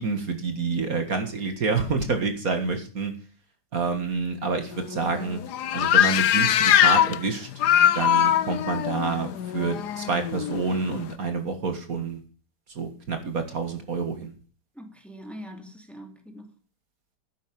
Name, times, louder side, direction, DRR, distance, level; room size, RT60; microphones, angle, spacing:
voice 1, 0.0-3.1 3.7-5.4 5.7-7.5 8.0-12.2 12.8-14.3, right 4 dB, 60° right, 2.2 m, -28 dB
sound 1, 4.7-11.1, left 10 dB, 85° left, 1.3 m, -22 dB
voice 2, 14.7-16.5, equal, ahead, 2.5 m, -43 dB
12.0 x 9.3 x 5.3 m
omnidirectional pair, 1.7 m